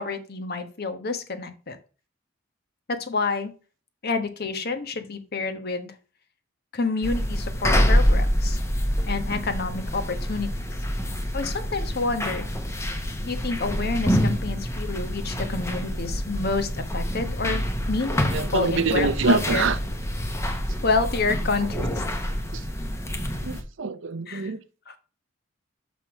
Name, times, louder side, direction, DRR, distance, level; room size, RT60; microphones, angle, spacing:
voice 1, 0.0-1.8 2.9-3.5 4.0-5.9 6.7-8.6 9.1-10.5 11.3-12.4 13.2-19.6 20.8-22.0 24.3-24.5 24.9-25.0, left 3 dB, 50° left, 1.2 m, -28 dB
sound 1, 7.0-23.6, equal, 15° left, 1.0 m, -26 dB
voice 2, 18.3-19.8 23.4-24.6, right 4 dB, 65° right, 0.7 m, -25 dB
6.2 x 5.5 x 6.2 m
head